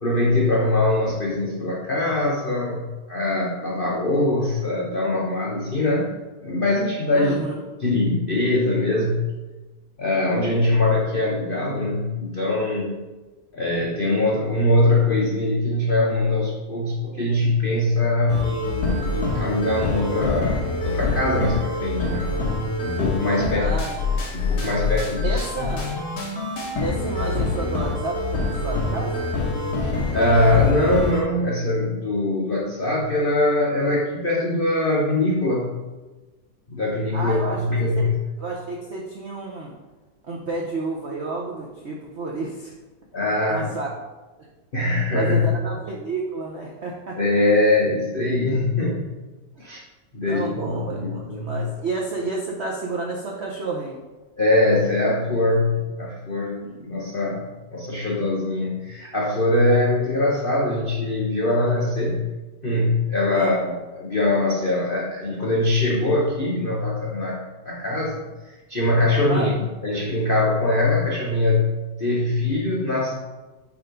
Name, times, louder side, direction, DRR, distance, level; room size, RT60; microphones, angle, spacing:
voice 1, 0.0-6.1 6.4-7.4 7.8-9.2 10.0-13.0 13.5-22.4 22.8-23.8 24.3-25.4 29.8-35.8 36.7-38.2 43.1-43.7 44.7-45.4 47.2-49.1 49.6-49.8 50.1-51.6 54.4-62.2 62.6-71.7 72.0-73.1, left 2 dB, 80° left, -3 dB, 0.4 m, -22 dB
voice 2, 7.1-7.6 23.5-24.2 25.2-25.9 26.8-29.3 37.1-38.1 38.4-39.8 40.3-42.7 43.5-43.9 45.1-47.2 49.6-49.7 50.2-54.0 56.6-56.8 63.3-63.6 69.3-69.5, right 3 dB, 75° right, -2 dB, 0.6 m, -31 dB
sound 1, 18.3-31.2, left 3 dB, 55° left, 1.7 m, -25 dB
4.9 x 4.8 x 5.1 m, 1.2 s
omnidirectional pair, 2.3 m